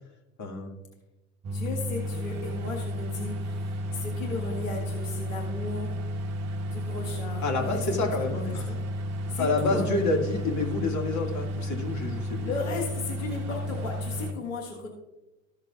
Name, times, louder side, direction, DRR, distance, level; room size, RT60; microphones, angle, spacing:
voice 1, 0.4-0.7 7.4-8.7 9.4-12.4, left 2 dB, 45° left, 2 dB, 2.1 m, -28 dB
sound 1, 1.4-14.3, equal, 40° right, 1.0 m, -32 dB
voice 2, 1.5-6.0 6.7-8.0 8.4-8.8 9.3-9.8 12.4-14.9, left 3 dB, 75° left, 1 dB, 1.5 m, -35 dB
14.0 x 6.6 x 2.4 m, 1.1 s
hypercardioid pair, 65°, 39 cm